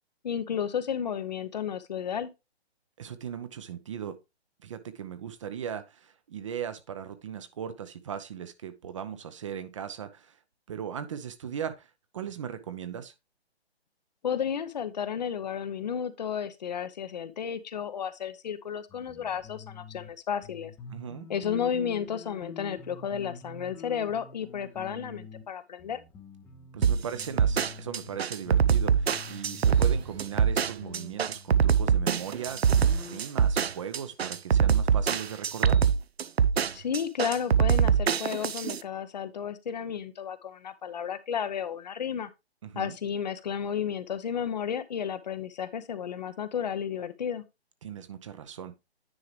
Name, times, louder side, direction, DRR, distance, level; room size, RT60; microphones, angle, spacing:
voice 1, 0.2-2.3 14.2-20.7 21.3-26.0 36.7-42.3 42.7-47.4, left 8 dB, 40° left, 0.7 m, -32 dB
voice 2, 3.0-4.2 4.6-10.4 10.7-13.1 20.9-21.3 26.7-35.8 42.6-43.0 47.8-48.8, right 8 dB, 30° right, 0.6 m, -38 dB
sound 1, 18.9-20.1 20.4-25.5 25.8-28.2 28.5-33.2, left 5 dB, 5° left, 0.6 m, -47 dB
sound 2, 26.8-38.8, right 7 dB, 75° right, 0.6 m, -23 dB
9.7 x 4.7 x 3.3 m
figure-of-eight pair, 135°, 32 cm